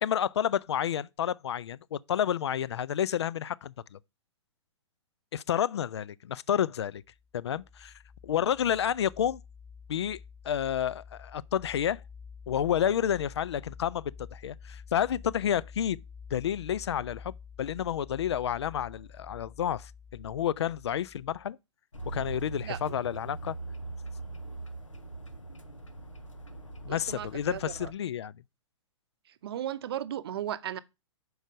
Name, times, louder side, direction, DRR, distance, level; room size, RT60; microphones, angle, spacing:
voice 1, 0.0-4.0 5.3-7.0 7.3-7.9 8.2-9.4 9.9-10.2 10.4-12.0 12.5-16.0 16.3-21.6 22.1-23.6 26.8-28.3, left 9 dB, 60° left, 0.4 m, -30 dB
sound 1, 7.0-21.5, left 6 dB, ahead, 1.0 m, -49 dB
sound 2, 21.9-27.9, right 3 dB, 80° left, 1.2 m, -41 dB
voice 2, 26.9-27.9 29.4-30.8, right 11 dB, 50° right, 0.6 m, -36 dB
6.4 x 4.7 x 6.3 m
figure-of-eight pair, 115°, 16 cm